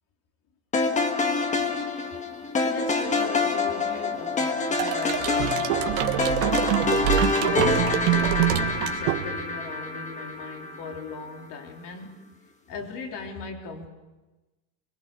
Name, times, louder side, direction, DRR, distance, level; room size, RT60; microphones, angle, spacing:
sound 1, 0.7-11.0, left 3 dB, 15° left, 1.3 m, -26 dB
voice 1, 2.6-5.8 7.3-12.1 12.7-13.9, left 4 dB, 45° left, 3 dB, 3.4 m, -37 dB
sound 2, 4.8-9.6, right 14 dB, 60° right, 1.4 m, -25 dB
25.5 x 21.0 x 6.7 m, 1.1 s
supercardioid pair, 150°, 44 cm